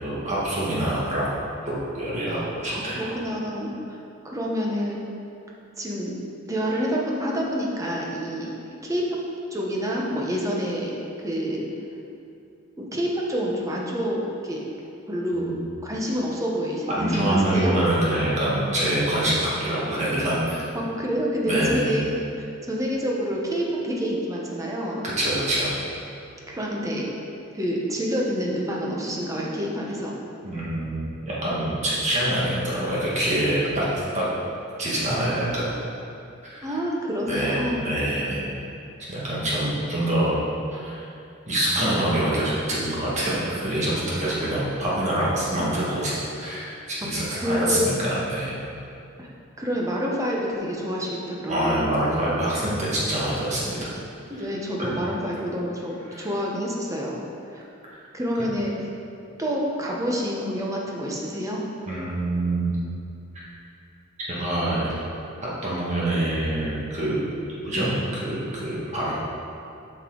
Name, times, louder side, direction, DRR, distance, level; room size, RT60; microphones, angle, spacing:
voice 1, 0.0-1.3 1.6-3.1 15.3-15.6 16.9-20.7 21.5-22.0 25.2-25.8 30.4-34.2 34.8-35.7 36.4-36.7 37.3-38.4 39.1-40.4 40.7-41.1 41.5-48.6 51.5-53.9 56.1-56.3 61.9-62.7 64.3-65.0 65.6-67.2 67.6-69.1, right 1 dB, 35° right, -7 dB, 1.7 m, -25 dB
voice 2, 2.7-3.7 4.2-5.0 5.8-6.2 6.4-8.5 8.8-9.1 9.5-10.9 11.2-11.6 12.8-14.6 15.1-15.5 15.8-17.7 20.7-22.1 22.7-25.1 26.5-27.1 27.5-30.1 36.6-37.8 47.3-47.9 49.2-49.3 49.6-51.9 54.3-57.2 57.5-57.6 58.1-58.7 59.4-61.6, equal, 15° right, -3 dB, 0.9 m, -27 dB
8.1 x 5.5 x 3.9 m, 2.6 s
head